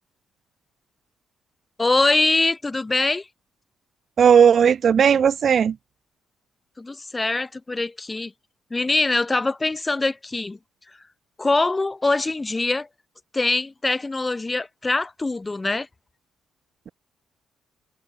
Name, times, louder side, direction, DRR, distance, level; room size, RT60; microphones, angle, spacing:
voice 1, 1.8-3.3 6.8-8.3 8.7-10.6 11.4-12.9 13.3-15.9, left 3 dB, 20° left, 6.1 m, -23 dB
voice 2, 4.2-5.8, right 7 dB, 55° right, 0.7 m, -16 dB
cardioid pair, 90°, 0 cm